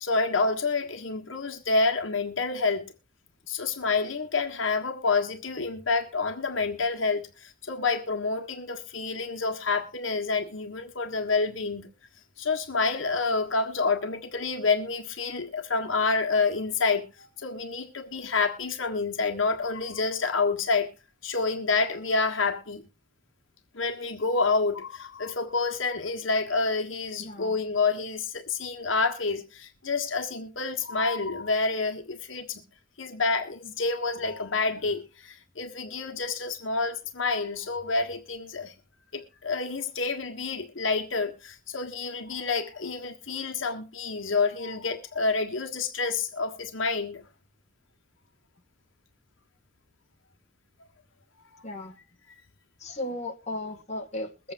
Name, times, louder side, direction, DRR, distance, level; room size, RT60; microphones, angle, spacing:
voice 1, 0.0-2.9 3.5-11.9 12.4-20.9 21.2-22.8 23.7-32.6 33.0-38.7 39.1-47.2, left 4 dB, 80° left, 1.5 m, -28 dB
voice 2, 27.2-27.6 51.6-52.0 52.8-54.5, left 1 dB, 35° left, 2.1 m, -36 dB
22.0 x 8.4 x 2.6 m
head